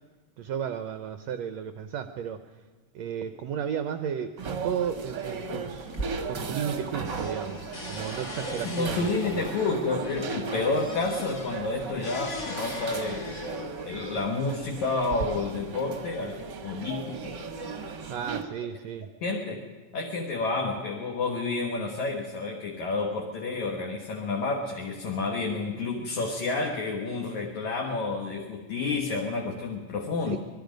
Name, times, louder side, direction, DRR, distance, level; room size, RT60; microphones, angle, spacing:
voice 1, 0.4-2.5 2.9-6.0 6.3-9.1 18.1-19.1 30.3-30.4, right 8 dB, 75° right, 9 dB, 1.6 m, -33 dB
sound 1, 4.4-18.4, right 4 dB, 50° right, 1.4 m, -37 dB
sound 2, 5.9-6.8 7.0-13.9 14.6-15.2, left 1 dB, 25° left, 1.6 m, -39 dB
voice 2, 8.5-13.4 13.9-17.3 19.2-19.7 19.9-30.4, left 3 dB, 60° left, 1 dB, 2.7 m, -30 dB
26.0 x 20.0 x 5.2 m, 1.3 s
omnidirectional pair, 3.9 m